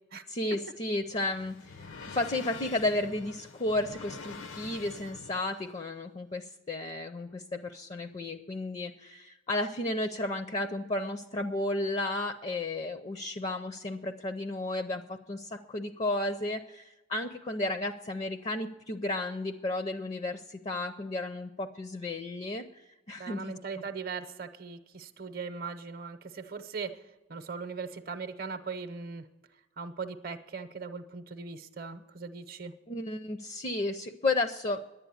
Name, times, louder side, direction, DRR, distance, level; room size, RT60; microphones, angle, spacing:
voice 1, 0.3-22.6 23.1-23.5 32.9-34.8, left 2 dB, 30° left, 8 dB, 0.5 m, -33 dB
sound 1, 0.6-5.7, left 4 dB, 75° left, 0.9 m, -46 dB
voice 2, 23.2-27.0 27.3-29.2 29.8-32.7, right 5 dB, 45° right, 8 dB, 0.7 m, -39 dB
11.0 x 9.1 x 9.3 m, 1.1 s
head